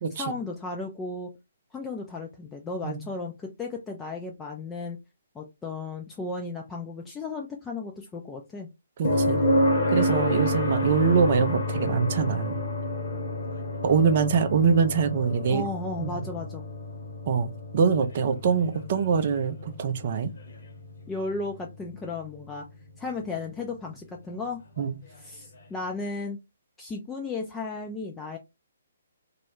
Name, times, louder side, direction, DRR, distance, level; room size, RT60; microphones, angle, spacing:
voice 1, 0.2-1.3 1.7-5.0 5.3-8.7 15.5-16.6 21.1-22.7 23.0-24.6 25.2-26.4 26.8-28.4, left 3 dB, 10° left, 0.4 m, -34 dB
sound 1, 9.0-22.9 25.1-25.2, left 1 dB, 60° left, 0.9 m, -29 dB
voice 2, 9.0-9.4 9.9-12.6 13.8-15.6 16.0-16.2 17.3-20.3 24.8-25.0, right 6 dB, 45° right, 0.5 m, -24 dB
2.3 x 2.0 x 3.0 m
figure-of-eight pair, 135°, 0 cm